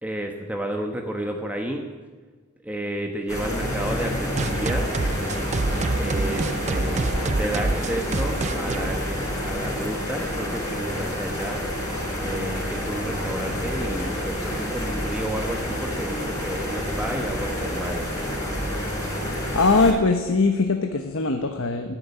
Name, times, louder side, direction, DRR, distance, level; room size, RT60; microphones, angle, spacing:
voice 1, 0.0-1.8 2.6-4.9 6.0-7.0 7.4-9.1 9.4-11.6 12.2-18.1, right 1 dB, 5° right, 2 dB, 1.2 m, -31 dB
sound 1, 3.3-19.9, equal, 15° left, 4.3 m, -28 dB
sound 2, 4.4-9.8, right 3 dB, 35° right, 0.5 m, -27 dB
voice 2, 19.5-21.9, left 3 dB, 70° left, 6 dB, 1.1 m, -21 dB
13.0 x 10.0 x 9.5 m, 1.4 s
head